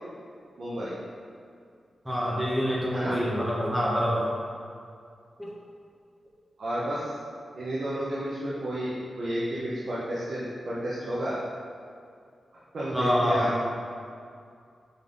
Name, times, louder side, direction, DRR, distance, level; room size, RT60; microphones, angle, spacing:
voice 1, 0.6-1.0 2.9-3.2 6.6-7.1 7.5-11.4 12.7-13.6, right 1 dB, 65° right, -9 dB, 1.2 m, -31 dB
voice 2, 2.0-4.2 5.4-5.5 12.9-13.5, equal, 10° right, -5 dB, 1.1 m, -26 dB
5.7 x 4.1 x 5.4 m, 2.3 s
cardioid pair, 80°, 0 cm